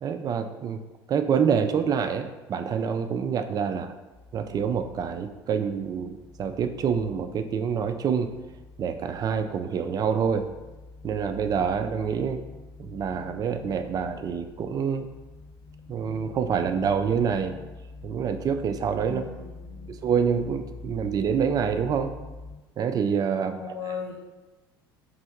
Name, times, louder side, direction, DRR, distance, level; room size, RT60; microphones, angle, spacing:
voice 1, 0.0-0.8 1.1-3.9 4.3-8.3 8.8-10.5 11.0-12.4 12.8-15.1 15.9-17.6 18.0-19.2 19.9-22.1 22.8-23.5, right 7 dB, 30° right, 8 dB, 0.3 m, -26 dB
sound 1, 4.1-22.6, left 3 dB, ahead, 0.7 m, -46 dB
voice 2, 19.0-20.0 23.4-24.1, left 6 dB, 55° left, -2 dB, 0.6 m, -37 dB
3.3 x 2.6 x 4.5 m, 1.1 s
figure-of-eight pair, 65°, 13 cm